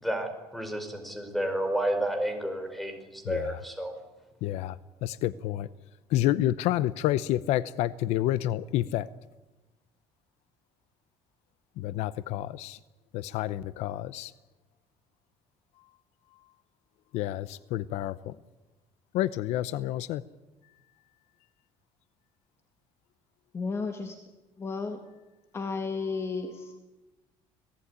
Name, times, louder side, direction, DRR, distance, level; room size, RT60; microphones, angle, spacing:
voice 1, 0.0-3.9, right 1 dB, ahead, 6 dB, 4.6 m, -31 dB
voice 2, 3.2-3.6 4.4-5.7 6.1-9.1 11.8-12.8 13.1-14.3 17.1-18.4 19.1-20.2, left 14 dB, 75° left, 17 dB, 0.8 m, -29 dB
voice 3, 23.5-24.2 24.6-25.0 25.5-26.8, left 4 dB, 25° left, 6 dB, 1.7 m, -33 dB
26.5 x 18.0 x 9.8 m, 1.1 s
cardioid pair, 160°, 11 cm